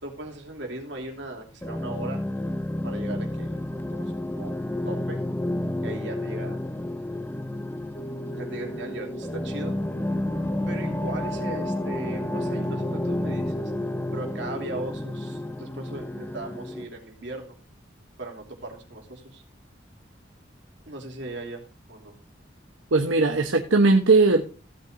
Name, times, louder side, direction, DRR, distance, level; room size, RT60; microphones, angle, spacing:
voice 1, 0.0-2.2 2.8-3.5 3.9-5.2 5.8-6.6 8.4-9.8 10.7-13.7 14.1-17.6 18.2-19.4 20.9-22.1, right 2 dB, 65° right, 2 dB, 2.9 m, -38 dB
sound 1, 1.6-16.8, left 1 dB, 10° left, 0.5 m, -31 dB
sound 2, 7.9-14.7, right 1 dB, 80° left, 5.8 m, -39 dB
voice 2, 22.9-24.4, right 3 dB, 80° right, 3 dB, 1.0 m, -18 dB
16.0 x 8.5 x 2.6 m, 0.34 s
head